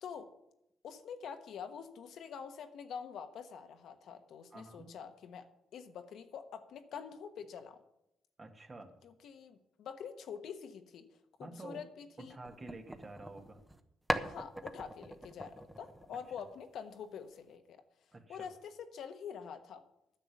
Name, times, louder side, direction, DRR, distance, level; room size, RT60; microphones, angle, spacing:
voice 1, 0.0-0.3 0.8-5.5 5.7-7.8 9.0-12.4 14.2-17.8 18.3-19.8, left 7 dB, 70° left, 7 dB, 1.2 m, -46 dB
voice 2, 4.5-5.0 8.4-8.9 11.4-11.9 12.2-13.6 18.1-18.5, right 2 dB, 30° right, 5 dB, 1.6 m, -49 dB
sound 1, 12.4-13.8 14.1-16.7, right 1 dB, 5° right, 1.0 m, -40 dB
9.9 x 6.9 x 9.1 m, 0.83 s
cardioid pair, 90°, 0 cm